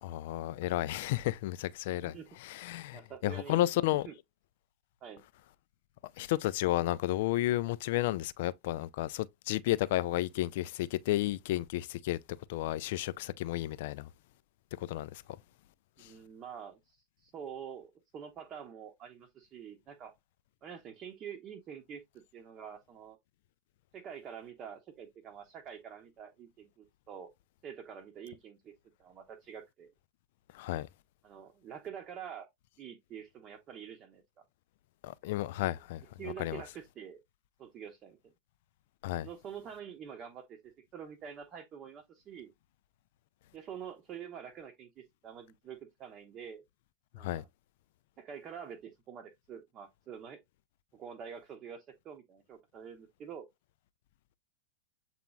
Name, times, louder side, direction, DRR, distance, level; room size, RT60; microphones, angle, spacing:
voice 1, 0.0-2.1 2.4-4.1 6.2-12.2 12.5-14.1 14.8-15.2 30.6-30.9 35.0-36.0 36.4-36.6 39.0-39.3 47.2-47.4, left 15 dB, 50° left, 0.3 m, -32 dB
voice 2, 1.9-2.3 2.9-3.7 4.0-4.1 5.0-5.2 16.0-20.1 20.6-23.2 23.9-27.3 27.6-28.7 29.0-29.9 31.2-32.5 32.8-34.2 36.2-37.2 37.6-38.3 39.2-40.6 40.9-42.5 43.5-46.6 47.1-47.5 48.2-50.4 50.9-53.5, right 8 dB, 30° right, 0.8 m, -46 dB
7.5 x 2.9 x 2.3 m
figure-of-eight pair, 90°, 0 cm